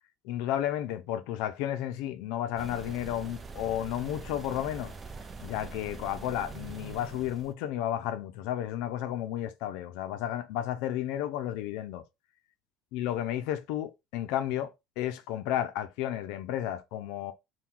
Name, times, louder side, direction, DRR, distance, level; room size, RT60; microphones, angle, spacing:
voice 1, 0.2-4.9 5.4-12.0 12.9-17.3, left 11 dB, 90° left, 0.5 m, -32 dB
sound 1, 2.6-7.5, right 4 dB, 20° right, 0.5 m, -43 dB
3.7 x 2.2 x 4.4 m
cardioid pair, 150°, 0 cm